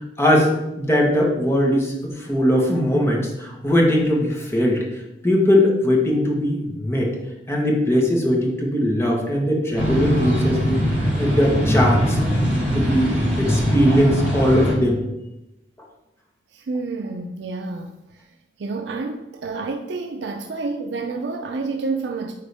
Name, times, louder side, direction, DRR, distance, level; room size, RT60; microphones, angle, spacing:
voice 1, 0.2-4.8 5.2-7.1 7.5-15.0, equal, 15° left, -1 dB, 1.3 m, -20 dB
sound 1, 9.7-14.7, equal, 10° right, 2.4 m, -21 dB
voice 2, 16.5-22.3, right 3 dB, 75° right, 4 dB, 0.5 m, -29 dB
9.3 x 3.6 x 3.5 m, 0.93 s
head